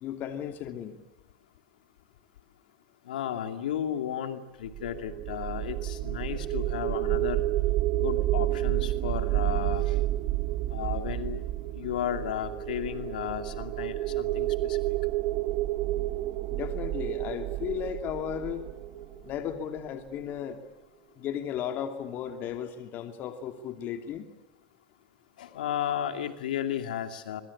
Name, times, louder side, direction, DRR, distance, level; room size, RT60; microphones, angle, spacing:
voice 1, 0.0-1.0 16.5-18.6 19.2-20.6 21.2-24.3, left 9 dB, 45° left, 7 dB, 2.6 m, -35 dB
voice 2, 3.1-7.4 8.0-10.0 10.7-11.4 11.8-14.8 25.4-27.4, left 10 dB, 85° left, 8 dB, 2.5 m, -34 dB
sound 1, 4.7-19.8, right 15 dB, 55° right, 1.4 m, -30 dB
25.5 x 23.5 x 8.6 m, 0.99 s
supercardioid pair, 110°, 4 cm